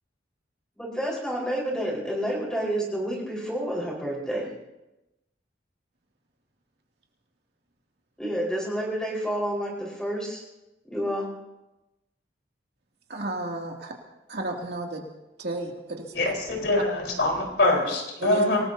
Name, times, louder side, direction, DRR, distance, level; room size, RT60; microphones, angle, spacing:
voice 1, 0.8-4.5 8.2-10.4 10.9-11.3, equal, 5° left, -3 dB, 4.7 m, -29 dB
voice 2, 13.1-13.9 14.3-15.0 15.4-16.1 18.2-18.4, right 1 dB, 60° right, 0 dB, 2.6 m, -32 dB
voice 3, 16.1-18.6, left 2 dB, 70° left, 0 dB, 4.3 m, -24 dB
27.0 x 19.0 x 2.8 m, 0.98 s
head